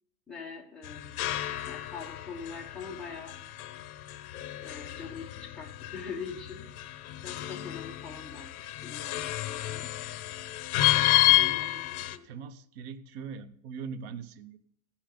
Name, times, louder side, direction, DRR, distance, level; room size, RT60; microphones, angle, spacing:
voice 1, 0.3-1.3 1.7-3.4 4.6-6.7 7.2-9.9 11.4-12.3, left 5 dB, ahead, -6 dB, 1.4 m, -43 dB
sound 1, 0.8-12.2, left 17 dB, 70° left, 0.9 m, -30 dB
voice 2, 10.8-11.9 12.2-14.6, right 6 dB, 45° right, 12 dB, 0.7 m, -42 dB
16.0 x 5.7 x 5.1 m, 0.69 s
supercardioid pair, 180°, 46 cm